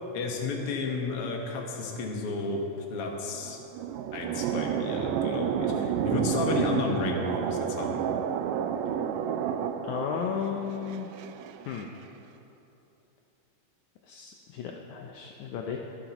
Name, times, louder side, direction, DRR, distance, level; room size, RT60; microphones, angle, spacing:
voice 1, 0.1-2.6 2.9-3.6 4.1-8.0, left 3 dB, 55° left, 0 dB, 1.9 m, -32 dB
sound 1, 3.3-11.8, right 8 dB, 85° right, 1.6 m, -31 dB
voice 2, 9.8-11.1 11.7-11.9 14.1-15.8, left 7 dB, 75° left, 2 dB, 1.9 m, -34 dB
24.5 x 9.9 x 3.0 m, 3.0 s
omnidirectional pair, 3.7 m